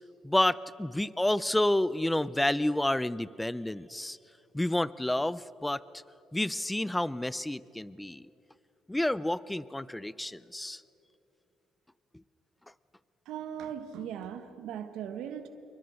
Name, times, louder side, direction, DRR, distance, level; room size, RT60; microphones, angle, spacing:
voice 1, 0.2-4.2 4.5-5.8 6.3-8.3 8.9-10.8, left 1 dB, 10° left, 19 dB, 0.6 m, -29 dB
voice 2, 13.2-15.5, right 9 dB, 80° right, 9 dB, 1.4 m, -39 dB
28.0 x 24.0 x 6.5 m, 2.8 s
cardioid pair, 90°, 0 cm